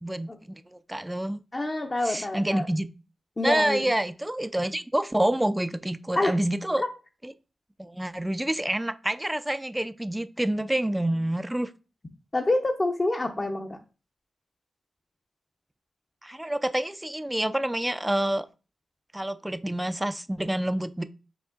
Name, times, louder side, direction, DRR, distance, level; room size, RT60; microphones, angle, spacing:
voice 1, 0.0-1.4 2.0-2.9 3.4-6.8 7.2-7.3 7.8-11.7 16.2-18.5 19.1-21.0, right 1 dB, 10° right, 0.4 m, -28 dB
voice 2, 1.5-2.6 3.4-3.8 6.2-6.4 6.8-6.9 12.3-13.8, left 2 dB, 30° left, 0.6 m, -26 dB
4.9 x 2.9 x 3.7 m
cardioid pair, 75°, 0 cm